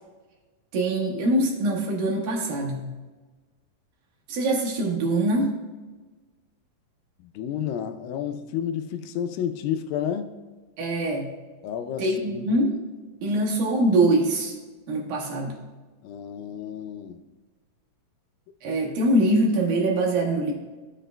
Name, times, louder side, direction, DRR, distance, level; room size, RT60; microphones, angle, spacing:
voice 1, 0.7-2.9 4.3-5.5 10.8-11.3 12.0-12.7 13.2-14.5 14.9-15.5 18.6-20.5, right 1 dB, 80° right, -2 dB, 3.1 m, -23 dB
voice 2, 7.2-10.3 11.6-12.1 12.3-12.5 16.0-17.2, left 9 dB, 85° left, 8 dB, 2.3 m, -31 dB
13.5 x 6.7 x 2.2 m, 1.3 s
omnidirectional pair, 4.1 m